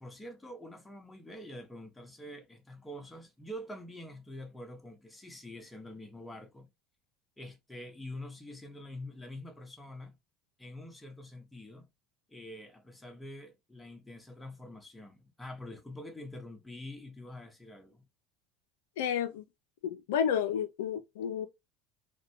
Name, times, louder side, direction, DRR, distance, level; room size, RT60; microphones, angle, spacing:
voice 1, 0.0-6.7 7.4-10.2 10.6-11.9 12.3-18.1, left 1 dB, 10° left, 0.8 m, -46 dB
voice 2, 19.0-19.4 19.8-21.5, left 8 dB, 85° left, 0.4 m, -31 dB
2.5 x 2.1 x 2.7 m
hypercardioid pair, 85°, 0 cm